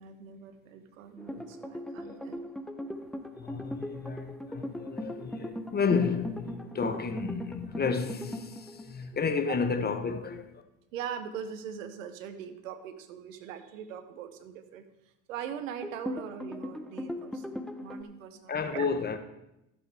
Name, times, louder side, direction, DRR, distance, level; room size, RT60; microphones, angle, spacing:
voice 1, 0.0-2.4 9.5-9.6 10.9-14.8 15.3-18.9, right 8 dB, 80° right, 1.1 m, -41 dB
sound 1, 1.2-9.2 15.8-18.0, equal, ahead, 0.8 m, -39 dB
voice 2, 3.1-10.6 18.5-19.2, left 5 dB, 25° left, 1.1 m, -31 dB
14.5 x 7.3 x 3.5 m
hypercardioid pair, 80°, 39 cm